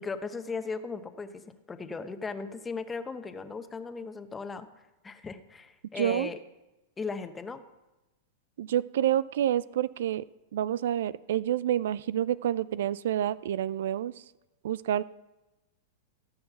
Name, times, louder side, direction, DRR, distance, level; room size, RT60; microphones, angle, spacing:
voice 1, 0.0-6.4 7.0-7.6, left 4 dB, 15° left, 9 dB, 1.0 m, -37 dB
voice 2, 6.0-6.3 8.6-10.2 10.5-14.2 14.6-15.0, right 11 dB, 75° right, 19 dB, 0.3 m, -28 dB
17.0 x 6.5 x 5.9 m, 1.0 s
hypercardioid pair, 115°, 0 cm